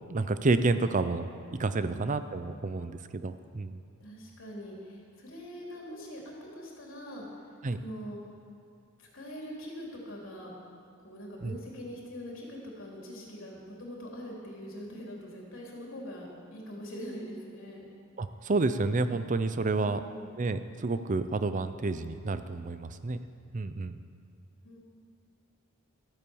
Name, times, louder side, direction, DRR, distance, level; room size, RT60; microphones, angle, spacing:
voice 1, 0.1-3.8 7.6-7.8 11.4-11.6 18.2-20.0 20.4-23.2 23.5-24.0, right 3 dB, 40° right, 11 dB, 0.5 m, -29 dB
voice 2, 1.8-2.4 4.0-8.2 9.0-10.5 11.0-17.8 19.7-20.4 24.6-24.8, equal, 70° left, -2 dB, 3.3 m, -43 dB
13.0 x 9.3 x 7.0 m, 2.3 s
head